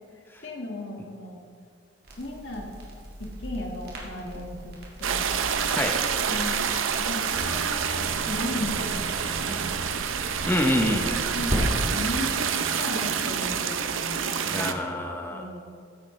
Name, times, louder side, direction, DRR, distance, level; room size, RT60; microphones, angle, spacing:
voice 1, 0.4-1.4 2.2-2.7 3.2-5.3 6.2-6.7 7.1-9.9 11.3-12.5 12.8-14.8 15.3-15.6, left 1 dB, 65° left, 0 dB, 1.7 m, -36 dB
Crackle, 2.0-11.6, right 1 dB, 50° right, 1.9 m, -38 dB
sound 1, 5.0-14.7, right 7 dB, 85° right, 0.6 m, -28 dB
sound 2, 7.4-13.2, right 2 dB, 30° right, 0.6 m, -41 dB
voice 2, 10.4-11.2 14.5-15.6, left 1 dB, 10° left, 2 dB, 0.7 m, -26 dB
13.5 x 10.5 x 3.2 m, 2.2 s
head